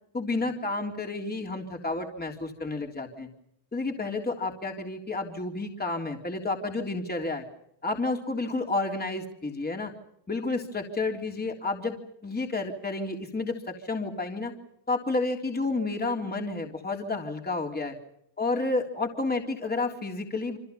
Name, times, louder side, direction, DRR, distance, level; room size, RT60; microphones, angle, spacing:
voice 1, 0.1-3.3 3.7-7.4 7.8-9.9 10.3-12.0 12.2-14.5 14.9-17.9 18.4-20.6, left 3 dB, 20° left, 2 dB, 3.6 m, -30 dB
29.0 x 25.5 x 5.6 m, 0.72 s
cardioid pair, 105°, 48 cm